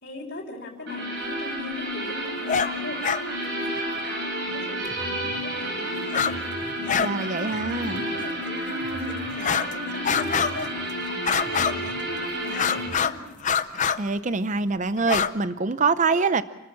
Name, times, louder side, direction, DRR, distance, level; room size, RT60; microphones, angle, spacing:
voice 1, 0.0-10.7 11.1-13.4, left 2 dB, 50° left, -3 dB, 4.3 m, -39 dB
sound 1, 0.9-12.9, right 1 dB, 55° right, 7.7 m, -31 dB
sound 2, 2.4-2.7 3.0-3.2 4.9-5.0 6.1-6.4 6.6-7.1 7.4-7.5 8.2-8.3 9.3-9.7 10.0-10.7 11.2-12.0 12.5-13.2 13.4-14.0 15.0-15.3, left 7 dB, 35° left, 0.6 m, -25 dB
sound 3, 4.5-13.0, left 1 dB, 65° left, 4.0 m, -45 dB
voice 2, 7.0-8.0 14.0-16.4, right 4 dB, 35° right, 13 dB, 0.6 m, -24 dB
29.5 x 14.0 x 7.2 m, 1.0 s
head